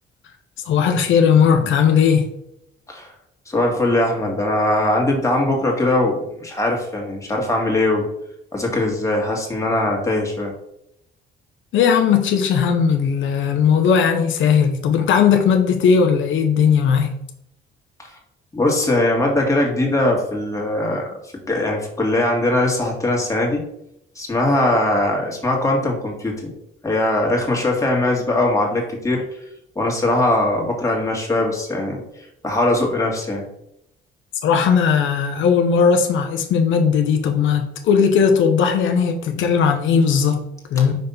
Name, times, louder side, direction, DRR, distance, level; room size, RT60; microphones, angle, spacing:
voice 1, 0.7-2.3 11.7-17.1 34.4-41.0, left 6 dB, 80° left, 0.8 m, -17 dB
voice 2, 3.5-8.1 8.5-10.5 18.5-21.1 21.5-23.7 24.2-26.5 26.8-29.3 29.8-32.0 32.4-33.5, left 1 dB, 15° left, 1.9 m, -20 dB
5.4 x 3.4 x 5.5 m
cardioid pair, 90°, 20 cm